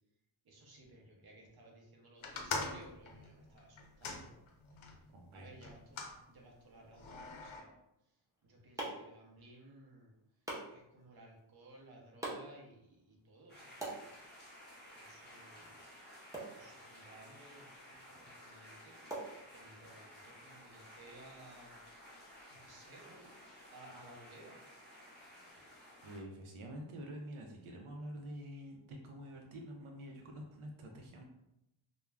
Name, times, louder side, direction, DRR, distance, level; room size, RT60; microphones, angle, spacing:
voice 1, 0.4-4.3 5.3-7.7 8.4-10.1 10.7-14.2 14.9-15.8 16.5-19.0 19.5-21.8 22.5-23.3 23.7-24.6, right 1 dB, 50° right, -1 dB, 0.7 m, -58 dB
sound 1, 2.2-5.0 5.6-6.2 7.0-7.6, left 4 dB, 75° left, 0.6 m, -42 dB
voice 2, 5.1-5.5 26.0-31.3, equal, 85° right, 1 dB, 0.6 m, -47 dB
sound 2, 8.1-20.0, right 2 dB, 5° right, 0.5 m, -49 dB
sound 3, 13.5-26.2, equal, 20° left, 0.9 m, -55 dB
2.3 x 2.1 x 3.2 m, 0.87 s
wide cardioid pair, 150°, 49 cm